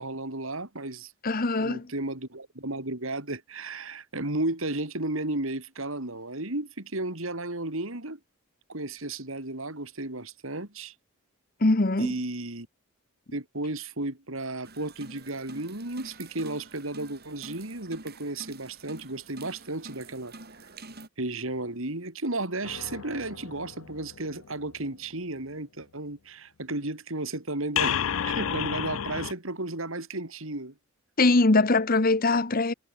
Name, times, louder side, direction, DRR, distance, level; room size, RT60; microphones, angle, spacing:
voice 1, 0.0-1.1 1.6-8.2 8.7-10.9 12.0-12.7 13.3-20.3 21.2-30.7, right 2 dB, 65° right, 3.3 m, -33 dB
voice 2, 1.2-1.8 11.6-12.1 31.2-32.7, left 2 dB, 40° left, 1.1 m, -22 dB
sound 1, 14.6-21.1, right 3 dB, 50° right, 6.4 m, -47 dB
sound 2, 22.6-24.7 27.8-29.3, left 9 dB, 65° left, 0.5 m, -31 dB
head